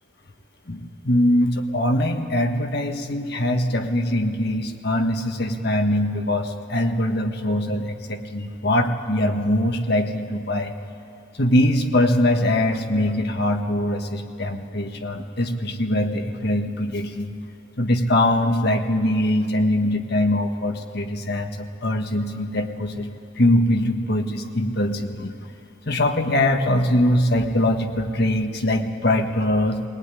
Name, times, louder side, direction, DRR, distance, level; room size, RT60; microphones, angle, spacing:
voice 1, 0.7-10.8 11.3-17.3 17.8-23.1 23.3-25.3 25.8-29.8, left 1 dB, 55° left, 5 dB, 1.6 m, -22 dB
20.0 x 19.0 x 9.9 m, 2.5 s
head